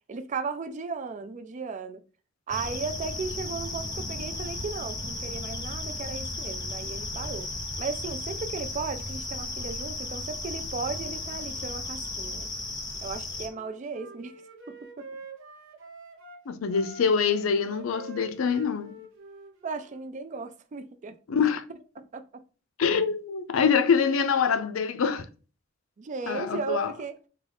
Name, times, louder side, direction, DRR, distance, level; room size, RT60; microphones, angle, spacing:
voice 1, 0.1-2.0 2.5-7.5 7.8-12.5 13.0-14.4 14.7-15.1 19.6-21.2 22.0-22.4 26.0-27.2, right 4 dB, 35° right, 0.3 m, -36 dB
sound 1, 2.5-13.5, left 2 dB, 20° left, 0.6 m, -35 dB
Wind instrument woodwind instrument, 13.5-16.4 16.7-20.1, right 3 dB, 65° right, 0.8 m, -46 dB
voice 2, 16.5-19.0 21.3-21.6 22.8-25.3 26.3-26.9, left 6 dB, 70° left, 0.4 m, -25 dB
3.5 x 2.3 x 3.3 m
head